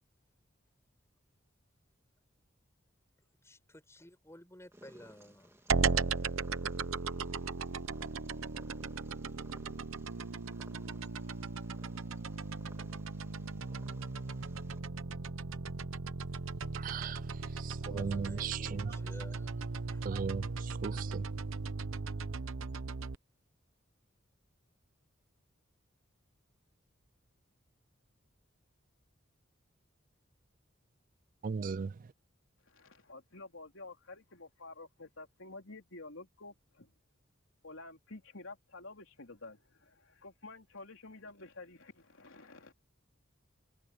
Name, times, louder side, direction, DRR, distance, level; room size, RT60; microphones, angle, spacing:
voice 1, 3.4-5.6 17.8-19.6 19.9-20.0, left 1 dB, 15° left, 6.5 m, -53 dB
Purr, 4.7-14.8, right 1 dB, 15° right, 2.1 m, -61 dB
sound 1, 5.7-23.1, right 4 dB, 90° right, 0.8 m, -37 dB
voice 2, 16.8-19.0 20.0-21.4 31.4-32.1, right 5 dB, 40° right, 0.3 m, -38 dB
voice 3, 32.6-36.9 37.6-42.7, left 2 dB, 80° left, 3.5 m, -50 dB
head